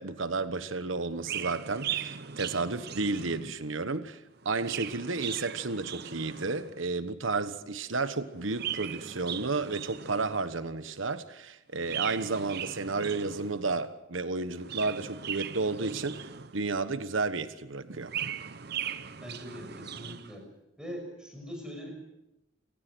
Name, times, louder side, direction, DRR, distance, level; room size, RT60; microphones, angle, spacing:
voice 1, 0.0-18.1, right 3 dB, 80° right, 1.3 m, -32 dB
Chirp tweet, 1.2-3.7 4.4-6.8 8.3-10.5 11.8-13.7 14.5-16.8 17.8-20.4, right 9 dB, 50° right, 0.8 m, -39 dB
voice 2, 19.2-20.5 20.8-21.9, equal, 5° right, 5.9 m, -42 dB
28.0 x 17.0 x 6.3 m
head